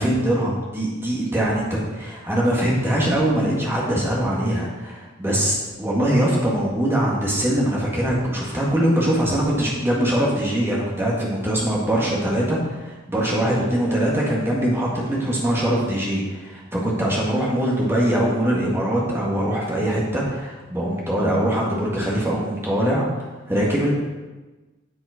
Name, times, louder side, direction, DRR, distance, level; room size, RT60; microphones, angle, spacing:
voice 1, 0.0-23.9, right 1 dB, 10° right, -4 dB, 2.0 m, -22 dB
7.8 x 7.4 x 5.1 m, 1.2 s
head